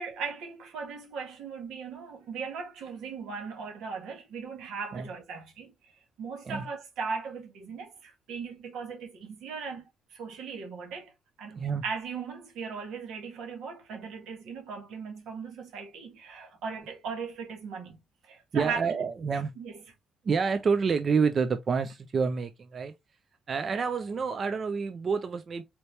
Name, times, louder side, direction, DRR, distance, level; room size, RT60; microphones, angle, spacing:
voice 1, 0.0-9.8 10.1-11.1 11.4-18.0 18.2-18.8 19.6-19.7, right 5 dB, 85° right, 1.5 m, -38 dB
voice 2, 18.5-19.8 20.2-22.9 23.5-25.6, right 5 dB, 45° right, 0.4 m, -28 dB
4.3 x 2.8 x 3.2 m
cardioid pair, 90°, 0 cm